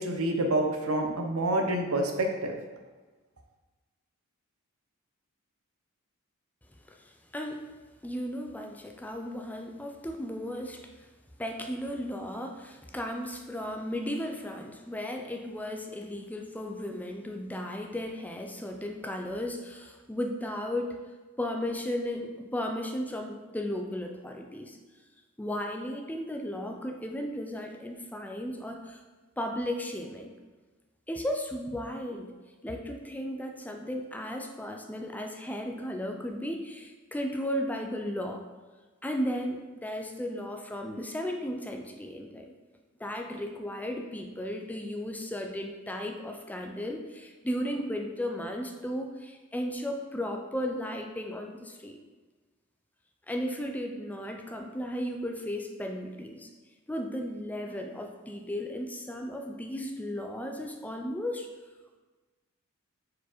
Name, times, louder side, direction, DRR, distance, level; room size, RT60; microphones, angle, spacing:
voice 1, 0.0-2.6, right 1 dB, 90° right, 3 dB, 0.8 m, -27 dB
voice 2, 6.9-7.6 8.0-10.9 11.4-21.0 21.4-24.8 25.4-29.0 29.4-30.4 31.1-32.3 32.6-38.4 39.0-42.5 43.0-52.0 53.3-56.5 56.9-61.5, equal, 5° left, 3 dB, 0.4 m, -35 dB
4.7 x 4.7 x 4.4 m, 1.3 s
head